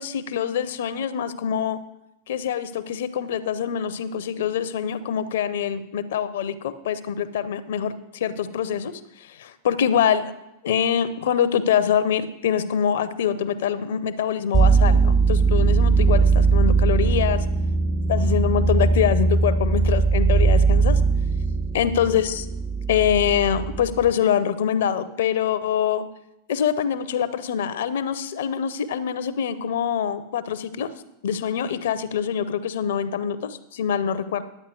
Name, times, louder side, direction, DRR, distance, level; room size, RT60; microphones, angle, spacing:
voice 1, 0.0-1.8 2.3-8.9 9.2-10.3 10.6-17.4 18.1-21.0 21.7-22.5 22.9-26.0 26.5-30.9 31.2-34.4, left 8 dB, 60° left, 14 dB, 0.7 m, -24 dB
sound 1, 14.5-24.1, right 4 dB, 10° right, 0.5 m, -20 dB
10.5 x 8.6 x 4.7 m, 0.91 s
figure-of-eight pair, 90°, 0 cm